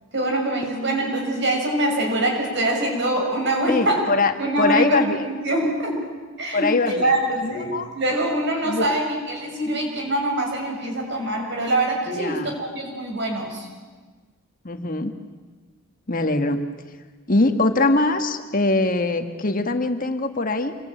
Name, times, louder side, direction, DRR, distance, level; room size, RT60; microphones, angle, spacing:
voice 1, 0.1-4.1 4.4-6.0 6.4-13.7, right 1 dB, 55° right, 2 dB, 6.5 m, -24 dB
voice 2, 3.7-4.3 4.6-5.3 6.5-7.1 7.4-7.9 8.7-8.9 12.1-12.5 14.6-15.1 16.1-16.6 17.3-20.8, left 2 dB, 40° left, 7 dB, 1.6 m, -22 dB
27.5 x 22.5 x 9.1 m, 1.4 s
head